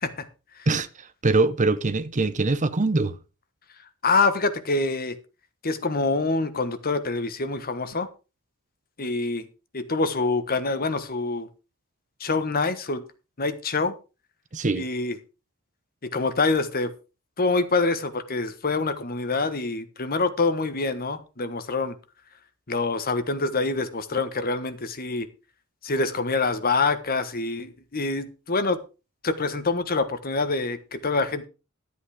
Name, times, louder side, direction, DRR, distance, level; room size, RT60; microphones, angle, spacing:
voice 1, 0.7-3.1 14.5-14.9, right 3 dB, 35° right, 0.7 m, -23 dB
voice 2, 4.0-5.2 5.6-8.1 9.0-9.5 9.7-11.5 12.2-13.0 13.4-13.9 14.7-15.2 16.1-16.9 17.4-22.0 22.7-25.3 25.8-28.8 29.2-31.4, left 3 dB, 40° left, 1.3 m, -26 dB
12.5 x 8.6 x 4.8 m
head